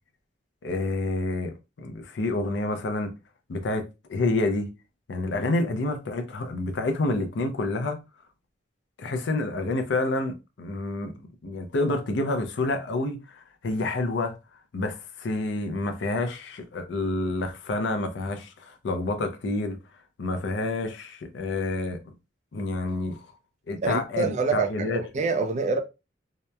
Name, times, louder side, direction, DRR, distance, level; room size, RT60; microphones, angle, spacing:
voice 1, 0.6-3.1 3.5-4.7 5.1-8.0 9.0-11.1 11.4-14.4 14.7-19.8 20.2-22.0 22.5-23.3 23.7-25.0, left 2 dB, 75° left, 0.5 m, -28 dB
voice 2, 23.8-25.8, right 4 dB, 40° right, 0.3 m, -26 dB
2.8 x 2.1 x 2.2 m
head